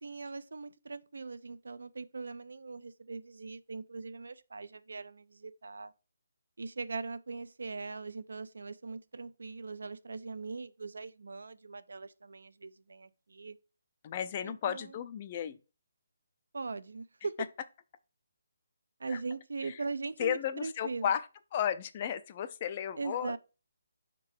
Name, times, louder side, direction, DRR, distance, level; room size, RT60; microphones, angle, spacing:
voice 1, 0.0-5.9 6.6-13.6 14.4-14.9 16.5-17.3 19.0-21.1 23.0-23.4, right 4 dB, 85° right, 0.5 m, -40 dB
voice 2, 14.0-15.6 19.1-19.2 19.6-19.8 20.2-23.4, left 9 dB, 25° left, 0.3 m, -34 dB
5.6 x 3.8 x 4.4 m
hypercardioid pair, 170°, 0 cm